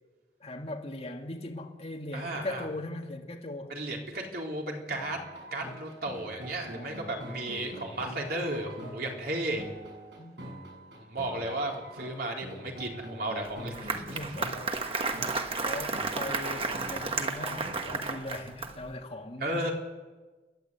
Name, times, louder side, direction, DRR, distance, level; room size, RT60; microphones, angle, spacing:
voice 1, 0.4-3.8 6.7-7.1 10.2-10.5 14.1-14.6 15.6-19.7, left 1 dB, 35° left, 2.0 m, -39 dB
voice 2, 2.1-2.7 3.7-5.2 5.5-9.6 11.0-14.0 19.4-19.7, right 1 dB, 60° right, 3.9 m, -34 dB
sound 1, 4.9-18.1, right 1 dB, 75° right, 7.7 m, -44 dB
Applause, 13.4-18.9, right 4 dB, 30° right, 1.3 m, -33 dB
29.5 x 11.0 x 8.2 m
head